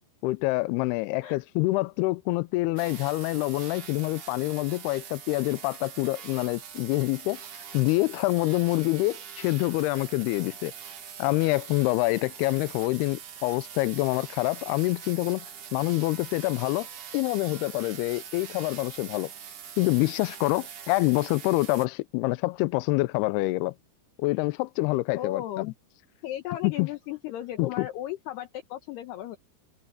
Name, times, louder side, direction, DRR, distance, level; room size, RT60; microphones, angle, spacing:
voice 1, 0.2-7.4 7.7-10.7 11.2-15.5 15.7-16.9 17.1-19.3 19.8-23.7 24.2-25.7 26.6-26.9 27.6-27.9, left 21 dB, 90° left, 2.2 m, -26 dB
sound 1, 2.8-21.9, right 8 dB, 75° right, 1.3 m, -43 dB
voice 2, 25.1-25.7 26.2-29.4, left 13 dB, 70° left, 3.0 m, -35 dB
omnidirectional pair, 5.2 m